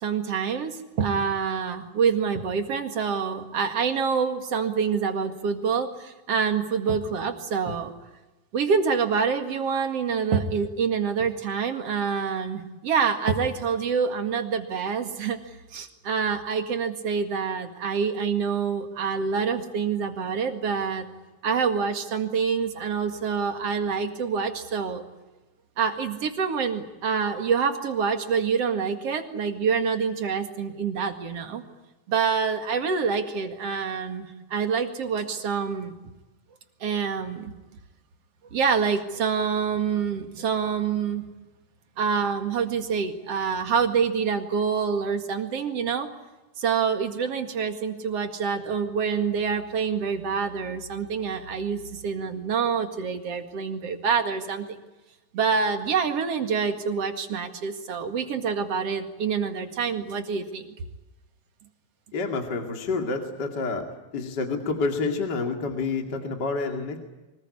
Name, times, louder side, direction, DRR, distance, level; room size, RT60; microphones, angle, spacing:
voice 1, 0.0-7.9 8.5-15.4 15.7-21.1 21.4-25.0 25.8-31.6 32.1-35.9 36.8-37.5 38.5-41.2 42.0-46.1 46.6-54.8 55.3-60.6, right 6 dB, 55° right, 7 dB, 2.9 m, -26 dB
voice 2, 62.1-63.8 64.1-67.0, left 4 dB, 35° left, 4 dB, 2.8 m, -28 dB
24.5 x 19.5 x 9.9 m, 1.1 s
omnidirectional pair, 3.3 m